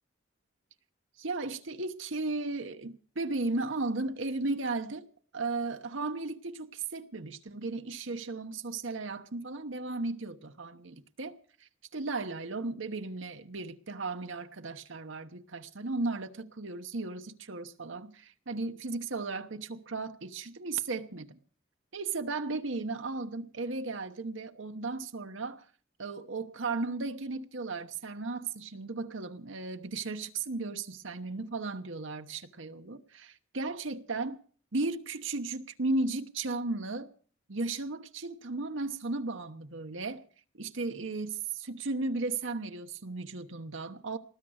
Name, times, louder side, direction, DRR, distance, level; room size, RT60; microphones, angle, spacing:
voice 1, 1.2-5.1 5.3-21.4 21.9-25.6 26.0-34.4 34.7-37.1 37.5-40.2 40.5-44.2, right 3 dB, 70° right, 1.1 m, -35 dB
19.5 x 10.0 x 6.4 m
head